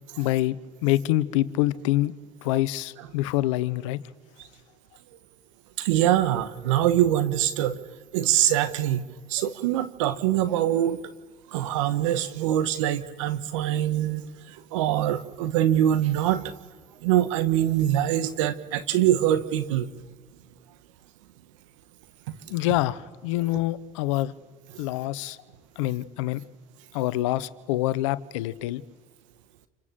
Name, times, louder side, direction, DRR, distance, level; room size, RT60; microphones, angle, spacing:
voice 1, 0.2-0.6 0.8-2.1 2.4-4.0 22.5-24.3 24.8-25.4 25.8-26.4 26.9-28.8, left 16 dB, 90° left, 16 dB, 1.0 m, -26 dB
voice 2, 5.8-7.8 8.1-11.0 11.5-16.4 17.0-19.9, right 12 dB, 90° right, 12 dB, 1.3 m, -24 dB
28.5 x 24.5 x 7.5 m, 1.3 s
hypercardioid pair, 65°, 16 cm